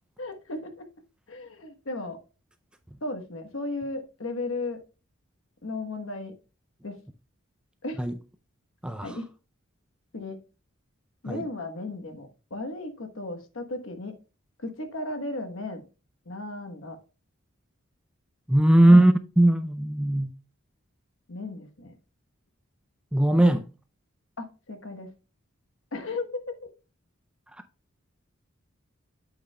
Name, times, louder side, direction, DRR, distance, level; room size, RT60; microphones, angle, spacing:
voice 1, 0.2-0.9 1.3-2.2 3.0-4.8 5.6-6.4 6.8-7.0 7.8-8.0 9.0-9.3 10.1-10.4 11.2-14.1 14.6-15.8 16.2-17.0 18.8-19.0 21.3-21.9 24.4-25.1 25.9-26.3, left 2 dB, 70° left, 1.1 m, -35 dB
voice 2, 8.8-9.1 11.3-11.5 18.5-20.3 23.1-23.7, right 1 dB, 5° right, 0.3 m, -19 dB
8.3 x 8.0 x 2.2 m
head